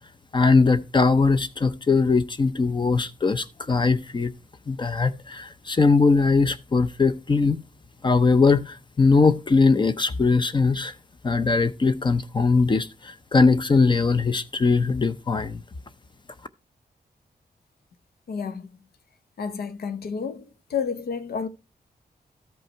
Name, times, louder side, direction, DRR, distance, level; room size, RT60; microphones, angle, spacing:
voice 1, 0.3-4.3 4.7-7.6 8.0-10.9 11.2-15.6, left 4 dB, 30° left, 0.5 m, -20 dB
voice 2, 18.3-18.7 19.4-21.5, left 6 dB, 85° left, 0.9 m, -30 dB
13.0 x 5.4 x 4.4 m
wide cardioid pair, 165°, 16 cm